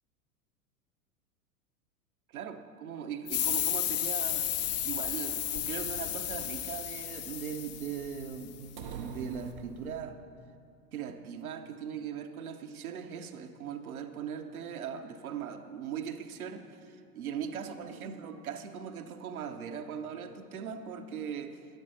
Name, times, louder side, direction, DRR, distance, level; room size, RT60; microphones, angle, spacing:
voice 1, 2.3-10.2 10.9-21.6, right 7 dB, 65° right, 7 dB, 0.9 m, -39 dB
sound 1, 3.3-8.6, left 12 dB, 30° left, 0.4 m, -33 dB
sound 2, 8.8-10.4, right 7 dB, 30° right, 0.4 m, -44 dB
11.5 x 10.5 x 4.2 m, 2.5 s
figure-of-eight pair, 90°, 47 cm